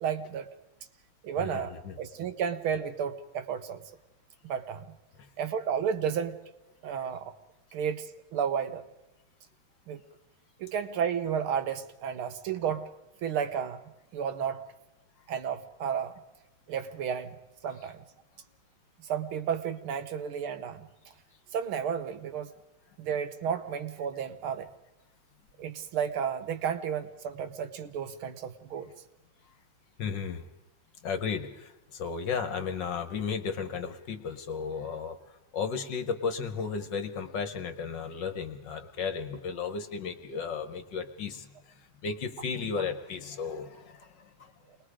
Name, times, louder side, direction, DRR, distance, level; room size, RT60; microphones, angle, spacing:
voice 1, 0.0-0.5 1.2-3.8 4.4-4.9 5.4-6.4 6.8-7.3 7.7-8.8 9.9-10.0 10.6-12.9 13.2-13.8 14.1-14.7 15.3-16.1 16.7-17.4 17.6-18.0 19.0-20.9 21.5-22.5 23.0-24.7 25.6-28.9, right 8 dB, 75° right, 9 dB, 1.8 m, -32 dB
voice 2, 1.4-2.0 5.2-5.3 6.9-7.0 30.0-30.5 31.0-44.5, left 5 dB, 60° left, 8 dB, 1.6 m, -34 dB
28.0 x 20.5 x 5.0 m, 0.94 s
omnidirectional pair, 2.4 m